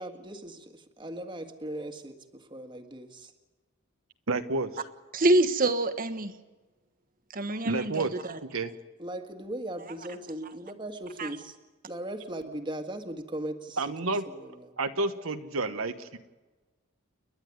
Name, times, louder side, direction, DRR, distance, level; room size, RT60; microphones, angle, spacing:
voice 1, 0.0-3.3 9.0-11.6 11.9-13.8 14.4-14.5, right 1 dB, 20° right, 5 dB, 1.8 m, -38 dB
voice 2, 4.3-4.8 7.6-8.7 13.8-14.3 14.8-16.2, right 3 dB, 75° right, 7 dB, 1.2 m, -30 dB
voice 3, 5.1-6.3 7.3-8.0 8.3-8.4 11.2-11.3, right 2 dB, 40° right, 7 dB, 1.5 m, -25 dB
30.0 x 11.5 x 9.6 m, 1.2 s
head